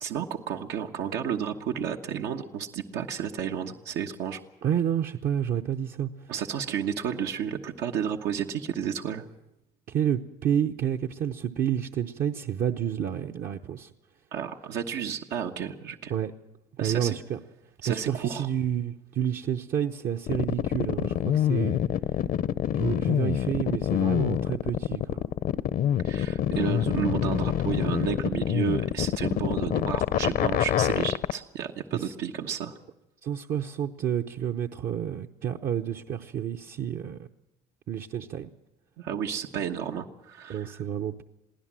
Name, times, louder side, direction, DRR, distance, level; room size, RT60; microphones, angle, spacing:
voice 1, 0.0-4.4 6.3-9.2 14.3-16.1 16.8-17.1 17.8-18.5 26.0-32.7 39.0-40.8, right 8 dB, 85° right, 1.2 m, -32 dB
voice 2, 4.6-6.1 9.9-13.9 16.1-16.3 16.8-17.4 17.9-21.8 22.7-25.2 31.9-32.1 33.2-37.2 37.9-38.5 40.5-41.2, right 9 dB, 60° right, 0.8 m, -29 dB
sound 1, 20.3-31.3, left 10 dB, 55° left, 0.7 m, -26 dB
23.0 x 16.0 x 7.5 m
cardioid pair, 110°, 17 cm